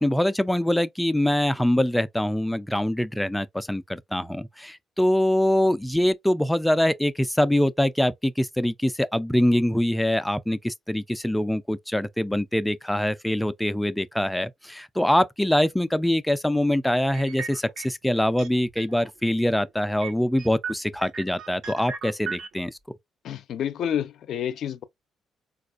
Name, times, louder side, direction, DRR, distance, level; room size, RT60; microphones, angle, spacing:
voice 1, 0.0-22.8, left 1 dB, 5° left, 0.3 m, -24 dB
sound 1, 17.1-18.1 18.4-19.1 19.4-19.5 20.0-22.5, right 6 dB, 70° right, 0.7 m, -36 dB
voice 2, 23.2-24.8, left 9 dB, 70° left, 0.4 m, -29 dB
4.1 x 2.4 x 2.4 m
cardioid pair, 90°, 0 cm